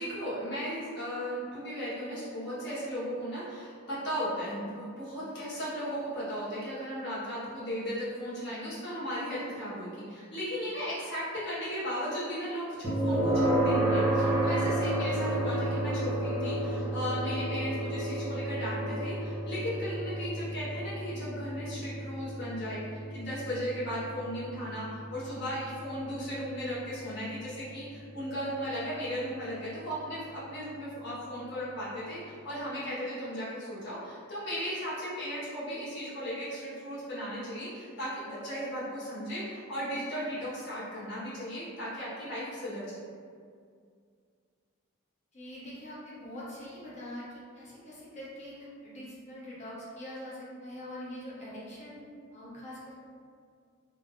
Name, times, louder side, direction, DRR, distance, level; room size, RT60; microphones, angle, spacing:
voice 1, 0.0-42.8, equal, 55° left, -11 dB, 1.3 m, -36 dB
sound 1, 12.8-27.8, right 1 dB, 10° right, 0.8 m, -31 dB
voice 2, 45.3-52.0 52.3-53.0, left 1 dB, 35° left, -7 dB, 0.7 m, -43 dB
3.4 x 2.0 x 2.5 m, 2.2 s
head